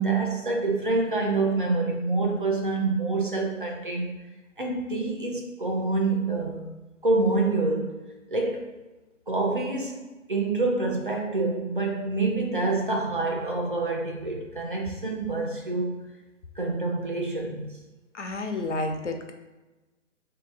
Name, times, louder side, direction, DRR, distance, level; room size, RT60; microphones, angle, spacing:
voice 1, 0.0-4.2 4.6-6.7 7.0-7.9 8.3-8.7 9.3-10.0 10.3-15.9 16.6-17.8, right 3 dB, 40° right, 0 dB, 0.6 m, -27 dB
voice 2, 18.1-19.3, left 2 dB, 65° left, 4 dB, 0.7 m, -30 dB
3.5 x 2.8 x 3.7 m, 1.1 s
hypercardioid pair, 175°, 39 cm